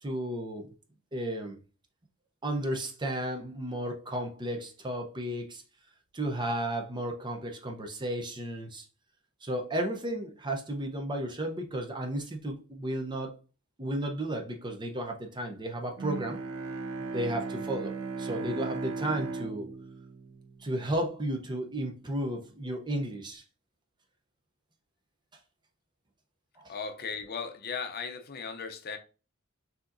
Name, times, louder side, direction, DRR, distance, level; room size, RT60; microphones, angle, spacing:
voice 1, 0.0-0.7 1.1-1.6 2.4-5.6 6.1-8.9 9.4-13.4 13.8-16.4 17.0-19.7 20.6-23.4 26.6-26.7, right 1 dB, 20° right, 0.7 m, -33 dB
Bowed string instrument, 16.0-21.2, right 4 dB, 85° right, 0.6 m, -37 dB
voice 2, 26.7-29.0, left 5 dB, 50° left, 0.6 m, -37 dB
6.1 x 2.8 x 2.5 m
head